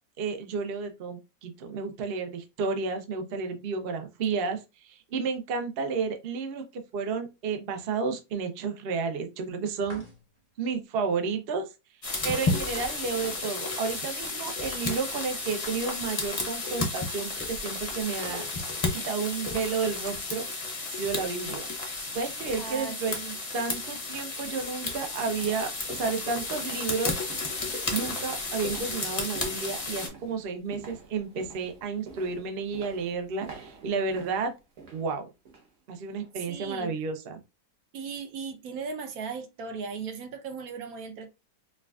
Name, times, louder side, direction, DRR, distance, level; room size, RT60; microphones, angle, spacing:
voice 1, 0.2-10.0 10.6-11.7 12.2-18.4 18.9-20.4 21.0-21.7 22.1-23.2 23.5-27.2 27.9-34.5 34.9-35.2 35.9-37.4, right 5 dB, 90° right, 0.5 m, -31 dB
sound 1, 9.8-10.5 13.2-14.3 14.5-14.6 18.2-19.0, equal, 25° right, 0.7 m, -45 dB
sound 2, 12.0-30.1, left 3 dB, 45° left, 0.4 m, -33 dB
voice 2, 22.6-23.3 36.5-36.9 37.9-41.3, right 5 dB, 70° right, 0.9 m, -37 dB
sound 3, 24.6-35.8 36.1-36.4 36.8-36.9, right 4 dB, 50° right, 1.3 m, -49 dB
4.5 x 2.4 x 2.3 m
omnidirectional pair, 1.9 m